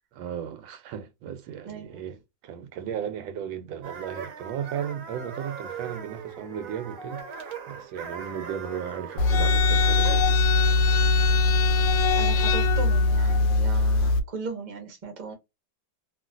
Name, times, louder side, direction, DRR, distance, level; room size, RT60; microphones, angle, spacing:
voice 1, 0.1-2.2 2.4-7.3 7.7-10.5, right 9 dB, 85° right, 1.4 m, -35 dB
voice 2, 1.7-2.0 12.1-15.3, right 4 dB, 30° right, 0.8 m, -37 dB
sound 1, 3.8-10.4, right 6 dB, 55° right, 1.0 m, -40 dB
sound 2, 9.2-14.2, left 3 dB, 75° left, 1.2 m, -21 dB
3.1 x 2.7 x 2.3 m
omnidirectional pair, 2.1 m